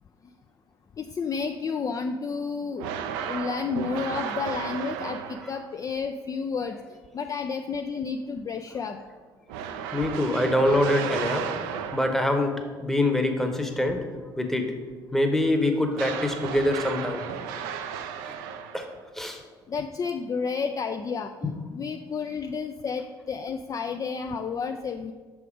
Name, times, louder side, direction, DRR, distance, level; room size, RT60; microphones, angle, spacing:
voice 1, 1.0-2.9 3.2-6.8 7.1-9.0 19.7-25.1, left 5 dB, 30° left, 6 dB, 0.3 m, -31 dB
sound 1, 2.8-5.8 9.5-12.4 15.9-19.0, right 8 dB, 65° right, 0.4 m, -34 dB
voice 2, 9.9-11.5 11.9-12.5 12.8-14.0 14.4-14.7 15.1-17.2 18.7-18.9 19.2-19.4, left 1 dB, 5° left, 4 dB, 0.9 m, -24 dB
6.5 x 3.5 x 4.9 m, 1.4 s
figure-of-eight pair, 50°, 12 cm